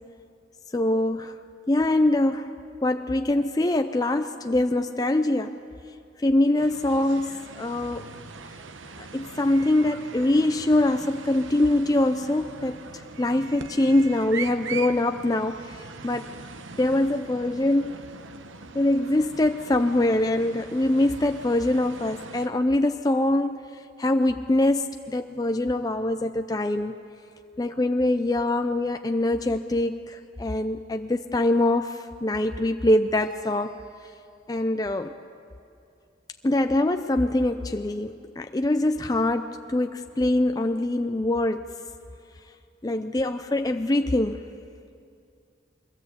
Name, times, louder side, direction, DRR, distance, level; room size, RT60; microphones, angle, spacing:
voice 1, 0.7-1.4 1.7-2.5 2.8-5.6 6.2-8.1 9.0-16.3 16.8-18.0 18.7-23.6 24.0-27.0 27.6-33.9 34.5-35.2 36.4-41.7 42.8-44.4, left 1 dB, 20° left, 7 dB, 0.4 m, -24 dB
sound 1, 6.6-22.5, right 4 dB, 80° right, 1.0 m, -41 dB
22.0 x 15.5 x 8.1 m, 2.5 s
head